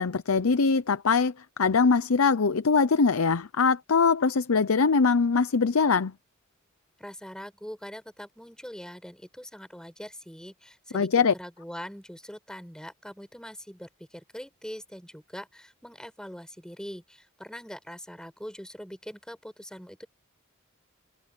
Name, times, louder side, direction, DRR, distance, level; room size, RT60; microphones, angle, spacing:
voice 1, 0.0-1.3 1.6-6.1 10.9-11.3, left 5 dB, 85° left, 0.7 m, -22 dB
voice 2, 7.0-11.1 11.3-20.1, equal, 5° left, 7.3 m, -42 dB
head